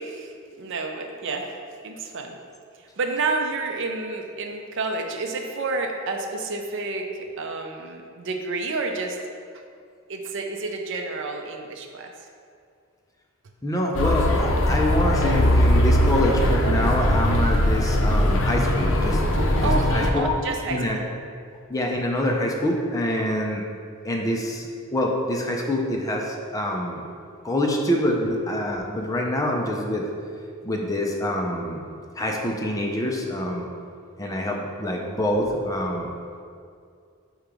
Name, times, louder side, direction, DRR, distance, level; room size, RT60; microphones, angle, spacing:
voice 1, 0.0-1.5 1.8-2.4 3.0-9.2 10.1-12.1 19.3-19.9 20.2-21.0, right 3 dB, 65° right, 4 dB, 0.6 m, -30 dB
voice 2, 13.6-19.2 19.6-20.3 20.7-21.0 21.7-23.6 24.0-27.0 27.4-30.1 30.6-31.8 32.2-33.6 34.2-36.1, left 1 dB, 15° left, 0 dB, 0.6 m, -25 dB
sound 1, 13.9-20.1, left 1 dB, 65° left, 0.7 m, -20 dB
4.7 x 4.5 x 5.2 m, 2.3 s
head